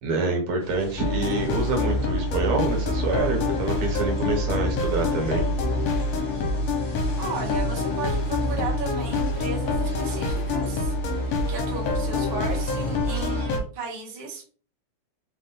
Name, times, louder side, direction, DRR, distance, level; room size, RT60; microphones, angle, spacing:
voice 1, 0.0-5.4, right 3 dB, 70° right, 2 dB, 2.4 m, -26 dB
sound 1, 0.6-13.5, left 1 dB, 30° left, 1.0 m, -38 dB
sound 2, 1.0-13.6, left 2 dB, 70° left, 1.9 m, -26 dB
sound 3, 1.2-3.1 5.0-6.2 6.5-6.6 6.9-7.1 9.0-10.2 10.5-11.1, left 1 dB, 50° left, 1.9 m, -42 dB
voice 2, 7.2-14.4, right 4 dB, 40° right, -2 dB, 0.7 m, -35 dB
4.7 x 2.5 x 3.9 m, 0.39 s
omnidirectional pair, 3.3 m